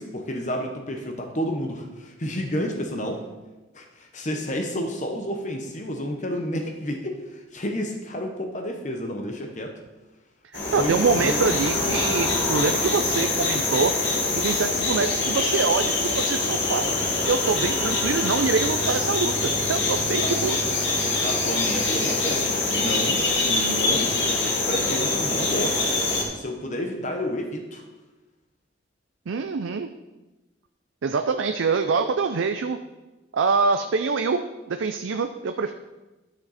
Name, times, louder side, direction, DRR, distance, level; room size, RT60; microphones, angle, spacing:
voice 1, 0.0-3.2 3.7-9.7 10.7-11.6 20.2-20.3 21.2-24.1 24.7-25.8 26.3-27.8, equal, 40° left, 3 dB, 0.9 m, -30 dB
sound 1, 10.5-26.2, left 2 dB, 65° left, 1.8 m, -24 dB
voice 2, 10.5-13.9 14.3-16.9 17.3-20.6 29.3-29.9 31.0-32.8 33.3-35.7, right 4 dB, 85° right, 7 dB, 0.5 m, -25 dB
11.5 x 6.5 x 4.1 m, 1.1 s
head